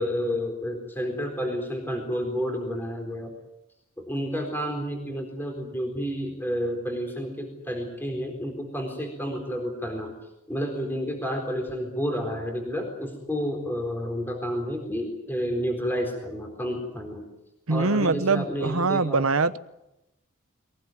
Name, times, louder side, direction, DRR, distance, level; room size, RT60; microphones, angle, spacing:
voice 1, 0.0-3.3 4.0-10.1 10.5-17.2 17.7-19.2, equal, 10° left, 2 dB, 4.1 m, -30 dB
voice 2, 17.7-19.6, right 3 dB, 70° right, 13 dB, 1.1 m, -23 dB
23.0 x 19.5 x 9.4 m, 0.92 s
head